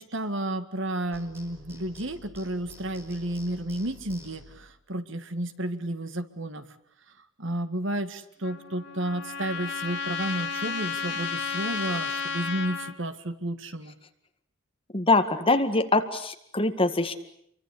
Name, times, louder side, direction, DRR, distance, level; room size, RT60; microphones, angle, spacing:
voice 1, 0.0-6.7 7.4-13.9, right 1 dB, 65° right, 10 dB, 2.0 m, -32 dB
sound 1, 1.1-4.7, left 2 dB, 10° right, 5.2 m, -49 dB
Trumpet, 8.4-12.9, left 5 dB, 60° left, 3.0 m, -32 dB
voice 2, 14.9-17.1, left 3 dB, 25° left, 7 dB, 2.0 m, -23 dB
29.0 x 24.0 x 8.4 m, 0.71 s
head